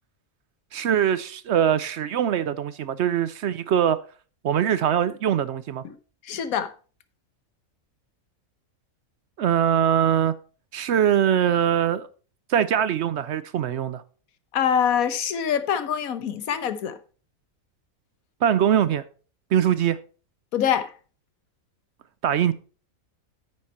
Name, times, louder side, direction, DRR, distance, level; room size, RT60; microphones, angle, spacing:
voice 1, 0.7-4.0 4.4-5.8 9.4-10.3 10.7-12.1 12.5-14.0 18.4-19.0 19.5-20.0 22.2-22.5, right 9 dB, 65° right, 0.8 m, -22 dB
voice 2, 6.2-6.7 14.5-17.0 20.5-20.9, left 8 dB, 90° left, 1.4 m, -24 dB
9.6 x 6.5 x 4.3 m
omnidirectional pair, 1.4 m